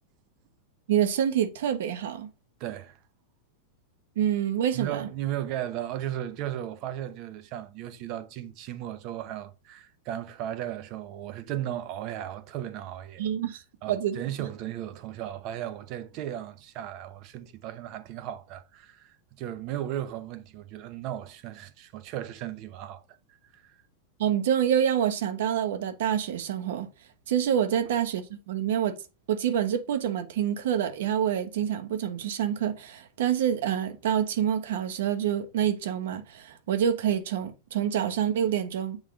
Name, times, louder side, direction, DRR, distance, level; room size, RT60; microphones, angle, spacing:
voice 1, 0.9-2.3 4.2-5.1 13.2-13.6 13.9-14.2 24.2-26.9 27.3-28.9 29.3-39.0, right 9 dB, 70° right, 1.1 m, -27 dB
voice 2, 2.6-3.0 4.7-13.2 13.8-23.0 23.5-23.8, right 12 dB, 40° right, 0.8 m, -36 dB
7.4 x 3.6 x 3.7 m
supercardioid pair, 155°, 0 cm